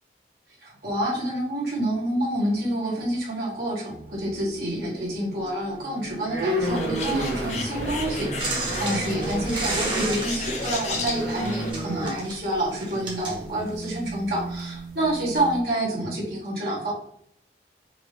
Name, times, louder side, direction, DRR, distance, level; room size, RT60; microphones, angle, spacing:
voice 1, 0.6-16.9, right 1 dB, 60° right, -5 dB, 1.6 m, -28 dB
sound 1, 3.9-4.6 5.0-15.6, right 1 dB, 80° right, 1.7 m, -33 dB
Bird, 6.6-11.7, left 3 dB, 40° left, 0.8 m, -33 dB
sound 2, 8.4-14.1 15.1-15.2, right 3 dB, 25° right, 1.3 m, -33 dB
5.8 x 2.8 x 3.2 m, 0.66 s
head